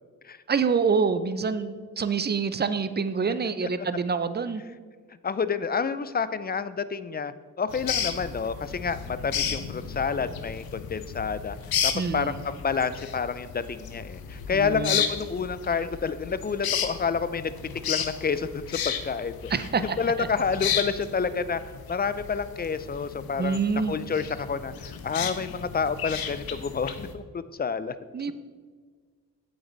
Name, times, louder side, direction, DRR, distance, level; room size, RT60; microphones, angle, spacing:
voice 1, 0.5-4.6 11.9-12.4 14.5-15.0 19.5-20.3 23.4-24.0 28.1-28.3, right 5 dB, 30° right, 12 dB, 0.6 m, -26 dB
voice 2, 5.2-11.6 11.8-17.5 17.9-19.5 19.8-21.6 21.9-23.6 23.9-28.0, left 5 dB, 25° left, 14 dB, 0.4 m, -29 dB
sound 1, 7.7-27.1, left 8 dB, 80° left, 0.8 m, -33 dB
8.1 x 7.9 x 4.0 m, 1.6 s
cardioid pair, 65°, 36 cm